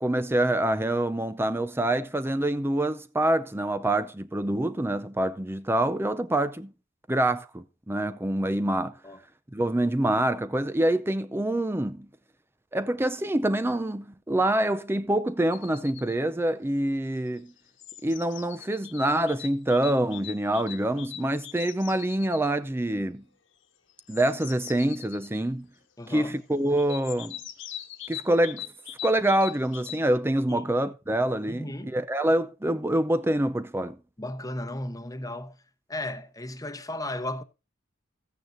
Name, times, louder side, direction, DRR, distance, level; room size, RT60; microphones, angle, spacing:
voice 1, 0.0-6.7 7.1-8.9 9.5-12.1 12.7-17.5 18.0-23.2 24.1-25.7 26.1-27.4 28.1-28.7 29.0-34.0, right 1 dB, 10° right, 0.6 m, -26 dB
sound 1, 15.5-16.2 17.3-22.5 23.9-25.4 26.8-30.2, left 12 dB, 70° left, 1.5 m, -42 dB
voice 2, 26.0-26.4 30.5-30.7 31.5-31.9 34.2-35.6 35.9-37.4, left 1 dB, 20° left, 1.0 m, -35 dB
15.0 x 9.2 x 2.7 m
head